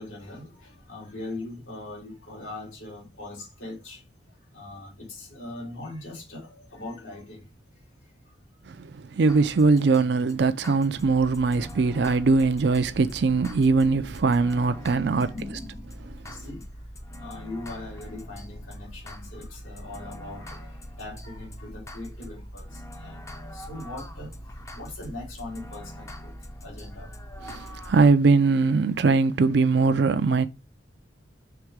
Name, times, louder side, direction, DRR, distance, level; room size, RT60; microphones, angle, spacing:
voice 1, 0.0-4.0 4.5-7.5 15.1-16.6 17.2-24.3 24.7-26.3 26.6-27.1 27.6-27.7, left 2 dB, 85° left, 3.2 m, -40 dB
voice 2, 8.7-15.3 27.5-30.5, right 4 dB, 60° right, 0.4 m, -21 dB
sound 1, 9.3-28.1, equal, 15° left, 0.5 m, -42 dB
5.9 x 3.6 x 4.7 m
head